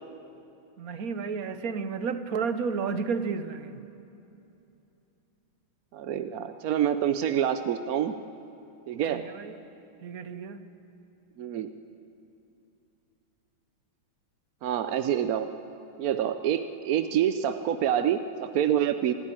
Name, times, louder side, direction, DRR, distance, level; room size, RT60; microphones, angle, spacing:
voice 1, 0.8-3.8 9.1-9.6 10.0-10.6, right 5 dB, 55° right, 1.2 m, -32 dB
voice 2, 5.9-8.1 8.9-9.3 11.4-11.7 14.6-15.5 16.0-19.1, right 10 dB, 70° right, 0.8 m, -27 dB
24.5 x 14.0 x 9.9 m
omnidirectional pair, 2.3 m